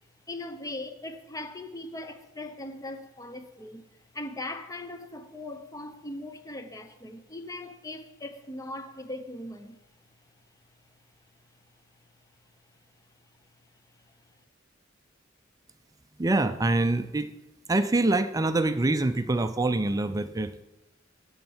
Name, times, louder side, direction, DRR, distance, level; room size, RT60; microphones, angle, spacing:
voice 1, 0.3-3.9 4.1-9.8, left 2 dB, 20° left, 0.7 m, -39 dB
voice 2, 16.2-17.3 17.7-20.6, right 2 dB, 20° right, 0.4 m, -25 dB
12.5 x 4.5 x 7.9 m
head